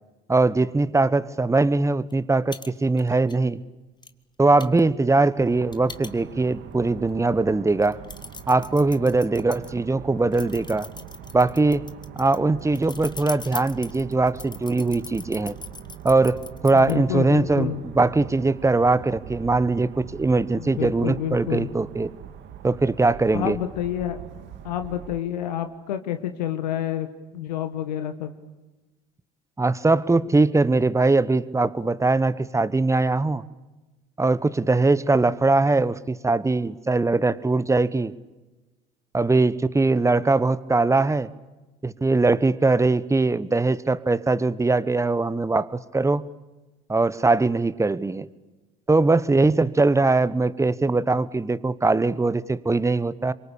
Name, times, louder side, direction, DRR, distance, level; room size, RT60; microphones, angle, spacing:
voice 1, 0.3-3.6 4.4-8.0 8.5-10.9 11.3-11.9 12.2-15.6 16.0-22.1 22.6-23.6 29.6-33.4 34.2-38.1 39.1-41.3 41.8-46.3 46.9-48.3 48.9-53.3, right 3 dB, 15° right, 17 dB, 1.2 m, -21 dB
sound 1, 2.1-2.2 2.5-2.7 3.0-3.4 4.0-4.1 4.6-6.6 7.1-7.2 7.7-9.7 10.3-16.9, left 4 dB, 20° left, 1.7 m, -40 dB
sound 2, 5.4-25.2, right 9 dB, 60° right, 2.1 m, -42 dB
voice 2, 16.7-17.8 20.5-21.7 23.3-24.2 24.6-27.1 27.3-28.3, left 11 dB, 85° left, 8 dB, 1.5 m, -29 dB
26.5 x 23.5 x 8.7 m, 1.1 s
hypercardioid pair, 65°, 21 cm